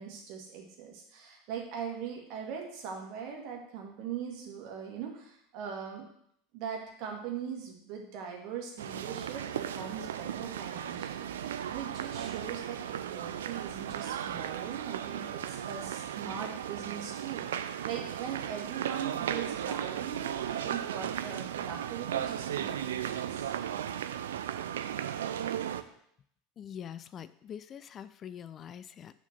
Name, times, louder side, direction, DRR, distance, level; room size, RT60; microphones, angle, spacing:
voice 1, 0.0-6.1 6.5-23.5, right 7 dB, 55° right, 0 dB, 2.0 m, -41 dB
sound 1, 8.8-25.8, right 10 dB, 70° right, 0.4 m, -36 dB
voice 2, 26.6-29.1, left 9 dB, 35° left, 14 dB, 0.3 m, -44 dB
6.9 x 4.4 x 6.8 m, 0.70 s
figure-of-eight pair, 75°, 0 cm